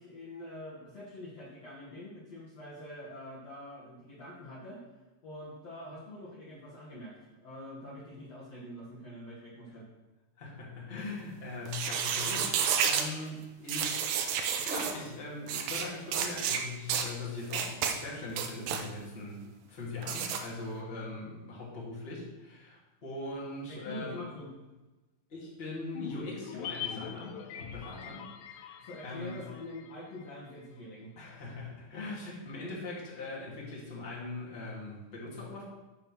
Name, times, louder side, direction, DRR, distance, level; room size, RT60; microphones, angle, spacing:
voice 1, 0.0-4.8 5.2-9.9 23.7-24.5 28.8-31.1, left 1 dB, 50° left, -7 dB, 2.2 m, -45 dB
voice 2, 10.4-14.1 14.6-19.4 19.7-24.3 25.3-29.4 31.2-35.6, left 2 dB, 20° left, -6 dB, 2.1 m, -41 dB
sound 1, 11.7-13.1 13.7-14.9 15.5-15.8 16.1-16.6 16.9-17.1 17.5-17.9 18.3-18.8 20.0-20.4, right 7 dB, 75° right, 2.3 m, -30 dB
sound 2, 25.9-30.4 30.6-30.7, left 9 dB, 85° left, 2.8 m, -43 dB
7.5 x 6.5 x 6.3 m, 1.1 s
omnidirectional pair, 4.7 m